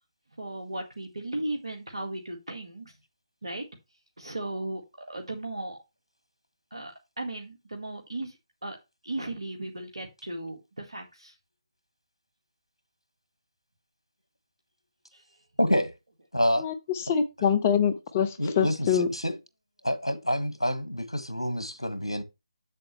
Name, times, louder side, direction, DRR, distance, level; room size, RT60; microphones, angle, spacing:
voice 1, 0.4-3.0 3.4-3.6 4.2-5.8 6.7-8.4 8.6-8.8 9.0-11.4 15.1-15.2, right 1 dB, 70° right, 1.9 m, -36 dB
voice 2, 15.6-15.9 16.3-16.7 18.4-19.3 19.8-22.2, equal, 85° left, 1.5 m, -27 dB
voice 3, 17.1-19.1, left 7 dB, 25° left, 0.8 m, -24 dB
7.7 x 7.3 x 3.1 m
figure-of-eight pair, 150°, 3 cm